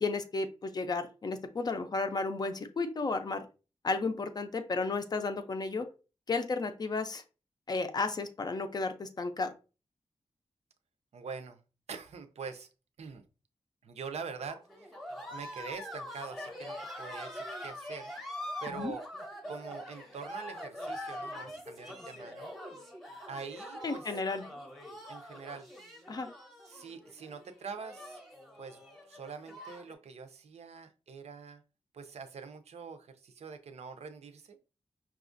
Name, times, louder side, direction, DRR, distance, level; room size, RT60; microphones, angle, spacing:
voice 1, 0.0-3.4 3.8-5.9 6.3-7.2 7.7-9.5 18.7-18.9 23.8-24.4 26.1-26.3, left 3 dB, 35° left, 7 dB, 0.4 m, -33 dB
voice 2, 11.1-11.6 11.9-12.7 13.0-13.2 13.8-14.9 15.3-18.1 18.6-19.0 19.5-22.5 23.3-24.2 25.1-25.7 26.6-28.2 28.6-31.6 31.9-34.6, right 5 dB, 75° right, 8 dB, 0.5 m, -44 dB
sound 1, 14.5-29.9, equal, ahead, 0.8 m, -43 dB
5.7 x 2.4 x 2.5 m, 0.33 s
wide cardioid pair, 175°, 11 cm